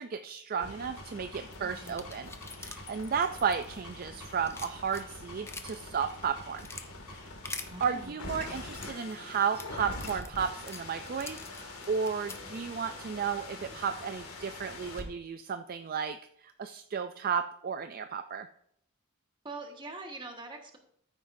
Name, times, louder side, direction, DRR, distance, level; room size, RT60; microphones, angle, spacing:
voice 1, 0.0-2.3 2.6-6.7 7.1-7.3 7.8-18.5, right 6 dB, 40° right, 9 dB, 0.4 m, -33 dB
sound 1, 0.5-15.0, left 2 dB, 75° left, 2.1 m, -44 dB
sound 2, 1.5-4.0 4.3-5.8 6.3-6.9 7.5-7.7 8.4-12.6, left 3 dB, 10° left, 0.6 m, -45 dB
voice 2, 1.6-2.1 7.7-8.2 19.4-20.8, right 2 dB, 20° right, 3 dB, 1.5 m, -43 dB
sound 3, 10.0-15.0, left 1 dB, 30° left, 4.8 m, -59 dB
14.5 x 8.8 x 2.7 m, 0.70 s
head